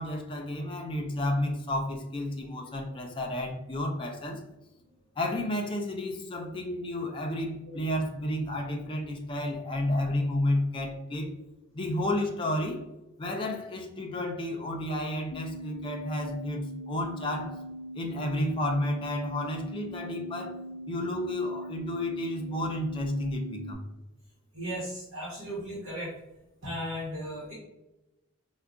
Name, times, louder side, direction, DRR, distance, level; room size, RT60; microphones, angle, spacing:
voice 1, 0.0-4.4 5.2-11.3 11.7-12.8 13.2-17.6 17.9-20.6 20.9-23.8, left 1 dB, 25° left, 1 dB, 0.5 m, -31 dB
sound 1, 15.3-23.7, equal, 85° left, 0.5 m, -41 dB
voice 2, 24.5-26.1 26.6-27.5, equal, 75° right, -7 dB, 1.1 m, -36 dB
4.5 x 2.2 x 2.5 m, 0.98 s
head